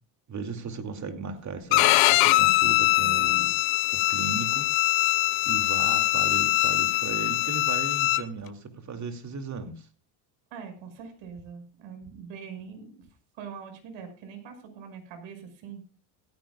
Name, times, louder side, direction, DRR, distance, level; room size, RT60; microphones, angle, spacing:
voice 1, 0.3-3.6 3.9-4.7 5.0-5.2 5.4-9.9, right 4 dB, 35° right, 6 dB, 2.6 m, -36 dB
Bowed string instrument, 1.7-8.2, left 20 dB, 75° left, 1.1 m, -22 dB
voice 2, 10.5-12.9 13.4-15.9, right 6 dB, 70° right, 6 dB, 6.1 m, -43 dB
16.5 x 15.0 x 2.4 m, 0.32 s
cardioid pair, 120°, 48 cm